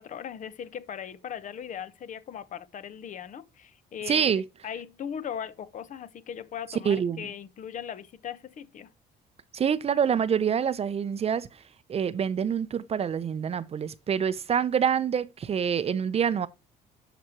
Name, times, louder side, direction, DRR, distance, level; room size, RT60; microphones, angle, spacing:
voice 1, 0.0-8.9, left 8 dB, 50° left, 0.8 m, -39 dB
voice 2, 4.1-4.4 6.8-7.3 9.5-11.6 11.9-16.5, right 7 dB, 35° right, 0.6 m, -26 dB
12.0 x 5.0 x 2.9 m
cardioid pair, 110°, 17 cm